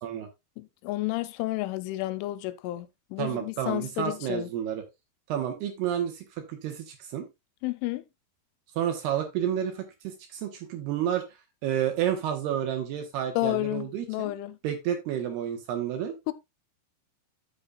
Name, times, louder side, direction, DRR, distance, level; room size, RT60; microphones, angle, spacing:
voice 1, 0.6-4.5 7.6-8.0 13.4-14.6 16.3-16.4, left 18 dB, 85° left, 3.0 m, -31 dB
voice 2, 3.2-4.8 5.3-7.3 8.8-11.2 11.6-14.3 14.6-16.1, right 10 dB, 70° right, 2.7 m, -30 dB
12.0 x 6.9 x 2.4 m
omnidirectional pair, 5.6 m